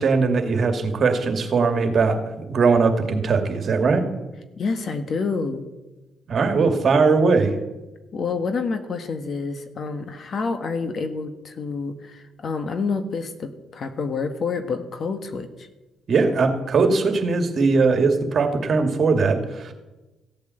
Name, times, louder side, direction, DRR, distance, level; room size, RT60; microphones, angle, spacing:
voice 1, 0.0-4.1 6.3-7.5 16.1-19.7, right 4 dB, 50° right, 6 dB, 2.2 m, -20 dB
voice 2, 4.6-5.7 8.1-15.7, left 4 dB, 50° left, 8 dB, 1.5 m, -28 dB
15.5 x 8.6 x 7.8 m, 1.1 s
cardioid pair, 90°, 0 cm